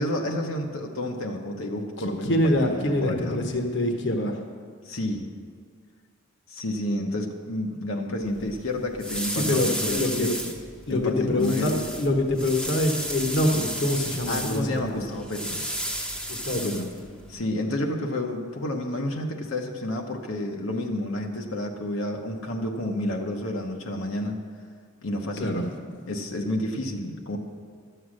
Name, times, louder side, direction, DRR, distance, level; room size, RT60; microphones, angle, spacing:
voice 1, 0.0-3.5 4.8-5.3 6.5-10.5 10.9-11.8 14.3-15.7 17.3-24.4 25.0-25.6 26.1-27.4, left 1 dB, 80° left, 1 dB, 1.1 m, -30 dB
voice 2, 2.0-4.4 9.4-10.3 10.9-15.0 16.3-17.0 25.4-26.0, left 1 dB, 60° left, 4 dB, 1.1 m, -25 dB
sound 1, 8.2-17.4, equal, 5° left, 0.7 m, -33 dB
12.5 x 7.9 x 6.4 m, 2.1 s
head